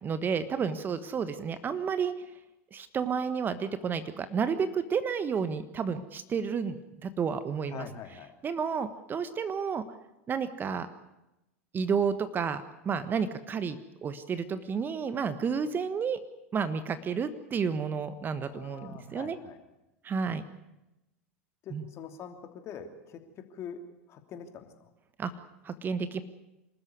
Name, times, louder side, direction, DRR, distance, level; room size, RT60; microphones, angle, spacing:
voice 1, 0.0-2.1 2.7-7.9 8.4-9.8 10.3-10.9 11.7-16.2 16.5-19.4 20.0-20.4 21.7-21.8 25.2-25.3 25.6-26.2, right 6 dB, 25° right, 12 dB, 1.4 m, -31 dB
voice 2, 7.7-8.3 18.5-19.6 21.6-22.4 22.6-23.8 24.1-24.9, left 8 dB, 40° left, 6 dB, 2.9 m, -44 dB
26.0 x 13.5 x 9.5 m, 0.95 s
hypercardioid pair, 90°, 7 cm